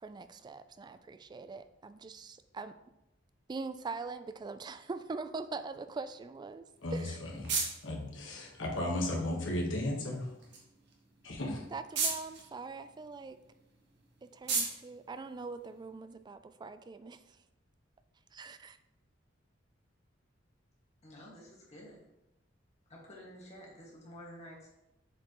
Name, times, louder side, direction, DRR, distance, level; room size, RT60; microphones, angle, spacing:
voice 1, 0.0-2.8 3.5-6.6 6.9-7.2 11.7-13.4 14.2-17.4 18.3-18.8, right 4 dB, 25° right, 11 dB, 0.3 m, -42 dB
sound 1, 6.7-16.1, right 4 dB, 65° right, 1.5 m, -40 dB
voice 2, 6.8-10.3 11.2-11.6, left 1 dB, 80° left, -1 dB, 1.4 m, -35 dB
voice 3, 21.0-22.0 22.9-24.7, equal, 35° left, -4 dB, 1.9 m, -50 dB
7.3 x 4.7 x 3.0 m, 0.91 s
head